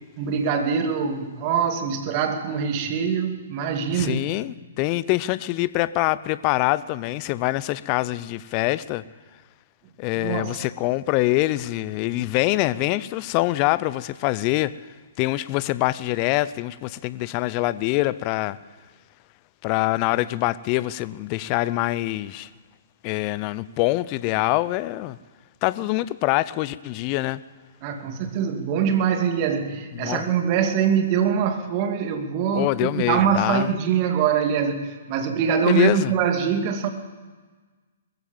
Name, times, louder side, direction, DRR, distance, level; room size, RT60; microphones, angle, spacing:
voice 1, 0.2-4.2 10.2-10.6 27.8-36.9, right 7 dB, 40° right, 2.5 m, -23 dB
voice 2, 3.9-9.0 10.0-14.7 15.2-18.6 19.6-22.5 23.0-25.2 25.6-27.4 29.9-30.3 32.5-33.7 35.7-36.1, left 18 dB, 35° left, 0.7 m, -24 dB
20.5 x 15.0 x 8.8 m
figure-of-eight pair, 120°, 0 cm